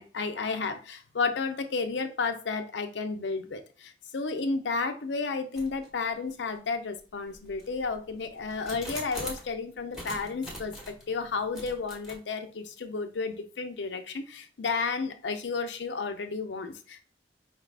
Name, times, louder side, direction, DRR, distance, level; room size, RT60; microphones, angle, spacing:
voice 1, 0.0-17.0, left 4 dB, 75° left, 7 dB, 0.6 m, -32 dB
sound 1, 5.5-5.9 6.5-6.6 7.3-9.5 9.9-11.0 11.5-12.2, equal, 5° right, 1.1 m, -42 dB
4.8 x 2.4 x 3.4 m, 0.37 s
head